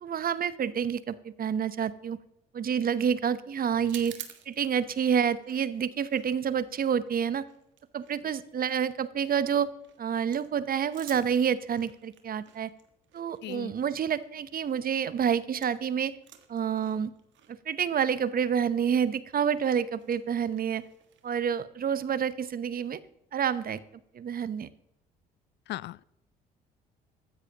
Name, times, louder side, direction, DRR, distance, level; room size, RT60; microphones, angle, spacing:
voice 1, 0.0-2.2 2.5-4.1 4.5-7.5 7.9-9.7 10.0-12.7 13.1-16.1 16.5-17.1 17.7-20.8 21.2-23.0 23.3-23.8 24.1-24.7, right 8 dB, 45° right, 16 dB, 0.9 m, -28 dB
sound 1, 3.8-15.9 16.1-21.4, right 10 dB, 60° right, 1.6 m, -52 dB
voice 2, 25.7-26.0, left 15 dB, 55° left, 22 dB, 0.4 m, -37 dB
15.5 x 13.0 x 2.9 m, 0.85 s
hypercardioid pair, 55°, 21 cm